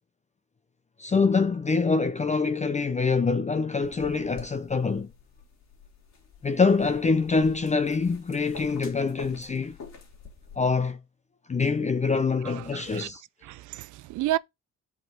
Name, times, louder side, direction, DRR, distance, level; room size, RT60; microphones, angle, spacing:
voice 1, 1.0-5.1 6.4-9.8 10.6-11.0 11.5-13.2, left 4 dB, 25° left, 0.6 m, -25 dB
sound 1, 3.8-10.6, left 5 dB, 60° left, 3.6 m, -46 dB
voice 2, 12.4-13.1 13.4-14.4, right 15 dB, 75° right, 0.5 m, -31 dB
5.9 x 5.3 x 5.0 m
cardioid pair, 90°, 30 cm